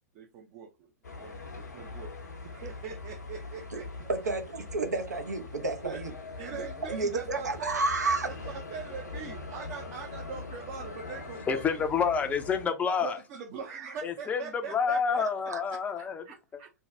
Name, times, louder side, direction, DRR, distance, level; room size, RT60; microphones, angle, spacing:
voice 1, 0.1-0.9 1.2-4.1 5.8-6.0 6.4-7.8 8.2-11.9 13.0-16.7, right 6 dB, 40° right, 0.5 m, -42 dB
sound 1, 1.0-12.7, left 3 dB, 80° left, 0.8 m, -42 dB
voice 2, 4.1-6.1 6.5-8.3 15.5-15.6, right 3 dB, 80° right, 0.7 m, -31 dB
voice 3, 11.5-13.2 14.0-16.2, left 6 dB, 15° left, 0.5 m, -28 dB
2.6 x 2.2 x 3.1 m
figure-of-eight pair, 105°, 9 cm